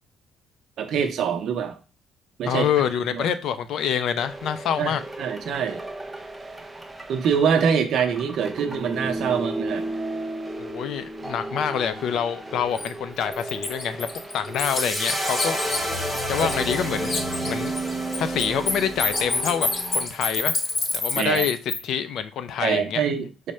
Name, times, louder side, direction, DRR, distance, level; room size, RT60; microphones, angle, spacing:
voice 1, 0.8-1.8 2.4-2.7 3.1-3.2 4.8-4.9 5.2-5.8 7.1-9.8 16.4-16.6 21.1-21.5 22.6-23.5, right 7 dB, 60° right, 0.7 m, -24 dB
voice 2, 2.5-5.0 10.6-15.6 16.3-17.8 18.2-19.7 19.9-20.5 20.9-21.6 21.8-23.0, left 8 dB, 65° left, 0.4 m, -26 dB
sound 1, 4.2-20.1, right 2 dB, 10° right, 0.4 m, -34 dB
Bird, 12.8-12.9 13.3-16.8 17.0-21.8, left 3 dB, 40° left, 0.8 m, -27 dB
sound 2, 14.6-20.9, equal, 5° left, 1.0 m, -31 dB
4.9 x 2.1 x 4.2 m
cardioid pair, 145°, 0 cm